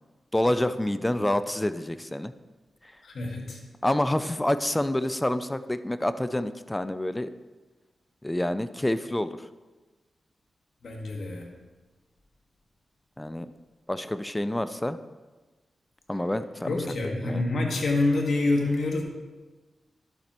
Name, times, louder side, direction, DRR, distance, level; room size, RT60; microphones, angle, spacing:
voice 1, 0.3-2.3 3.8-7.3 8.2-9.3 13.2-13.5 13.9-15.0 16.1-16.8 17.2-17.5, left 1 dB, 15° left, 12 dB, 0.4 m, -27 dB
voice 2, 3.0-3.6 10.8-11.4 16.7-19.0, left 2 dB, 70° left, 1 dB, 1.6 m, -26 dB
11.0 x 7.2 x 3.0 m, 1.2 s
cardioid pair, 55°, 0 cm